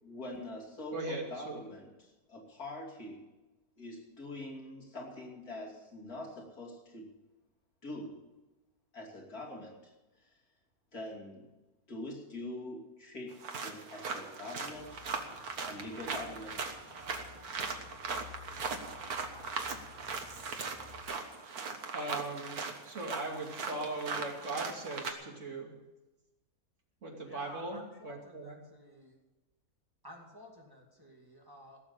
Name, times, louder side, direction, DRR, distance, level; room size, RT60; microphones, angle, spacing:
voice 1, 0.0-3.2 3.8-7.1 7.8-8.2 8.9-10.3 10.9-11.5 11.9-15.0 15.6-16.6, left 1 dB, 85° left, -2 dB, 3.5 m, -44 dB
voice 2, 0.9-1.5 21.9-25.7 27.0-28.6, right 2 dB, 55° right, 0 dB, 2.9 m, -39 dB
sound 1, 13.3-25.1, right 4 dB, 85° right, 1.8 m, -39 dB
sound 2, 14.6-21.0, left 4 dB, 10° left, 3.3 m, -53 dB
voice 3, 27.2-29.1 30.0-31.8, equal, 15° right, -1 dB, 2.3 m, -52 dB
16.5 x 7.0 x 9.7 m, 1.1 s
omnidirectional pair, 1.5 m